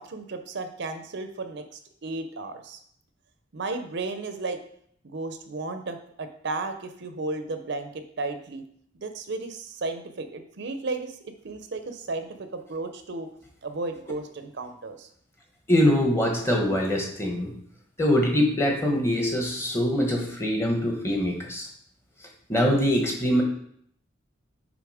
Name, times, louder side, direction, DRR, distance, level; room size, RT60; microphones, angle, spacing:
voice 1, 0.0-2.8 3.5-4.6 5.0-8.6 9.0-13.3 13.6-15.1, right 3 dB, 65° right, 8 dB, 0.6 m, -34 dB
voice 2, 15.7-17.5 18.0-21.7 22.5-23.4, equal, 15° left, 1 dB, 1.2 m, -23 dB
6.9 x 3.7 x 4.9 m, 0.66 s
head